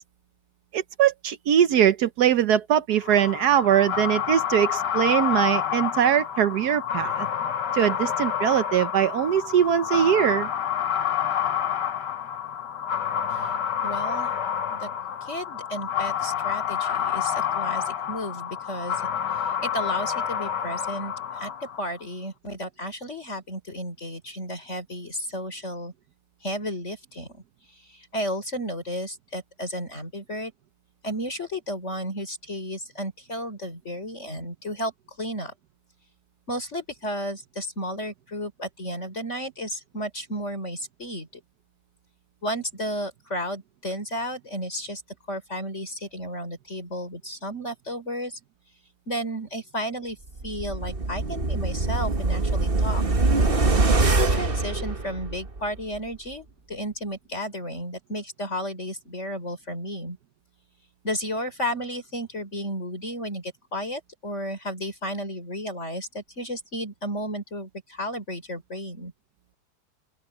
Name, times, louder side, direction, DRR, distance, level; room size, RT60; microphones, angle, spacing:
voice 1, 0.7-7.3 7.7-10.5, right 9 dB, 70° right, 1.3 m, -21 dB
sound 1, 3.0-21.9, left 9 dB, 80° left, 1.9 m, -28 dB
voice 2, 13.8-14.3 14.7-14.9 15.2-19.0 19.3-25.9 26.4-27.4 27.7-30.5 31.0-34.9 35.2-35.5 36.5-41.3 42.4-45.0 45.3-48.4 49.1-50.2 50.4-53.0 54.0-60.2 61.0-69.1, equal, 40° left, 4.9 m, -33 dB
sound 2, 50.4-55.6 55.9-56.0, right 3 dB, 35° right, 1.8 m, -23 dB
open air
omnidirectional pair, 1.8 m